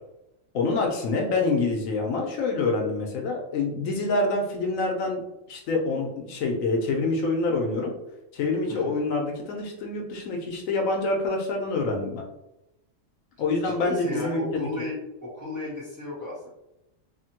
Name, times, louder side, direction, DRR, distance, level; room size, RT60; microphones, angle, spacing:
voice 1, 0.5-5.2 5.5-7.9 8.3-12.2 13.4-14.9, left 3 dB, 80° left, 1 dB, 1.0 m, -26 dB
voice 2, 13.6-16.5, left 1 dB, 15° right, -8 dB, 0.8 m, -34 dB
3.0 x 2.1 x 2.8 m, 0.91 s
omnidirectional pair, 1.4 m